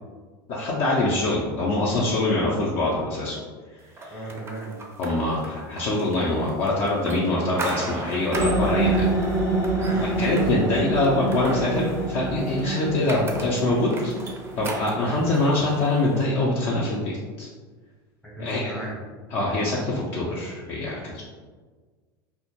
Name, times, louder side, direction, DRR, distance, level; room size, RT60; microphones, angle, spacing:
voice 1, 0.5-3.4 4.0-4.2 5.0-9.1 10.0-17.5 18.4-18.8 19.3-21.2, left 2 dB, 55° left, -5 dB, 0.5 m, -24 dB
sound 1, 4.0-16.2, right 2 dB, 20° right, 0.4 m, -37 dB
voice 2, 4.1-4.8 9.8-10.2 18.2-19.0, right 1 dB, 10° left, -4 dB, 0.7 m, -36 dB
sound 2, 8.3-15.6, right 2 dB, 85° left, 0.7 m, -26 dB
2.1 x 2.1 x 2.8 m, 1.4 s
hypercardioid pair, 90°, 12 cm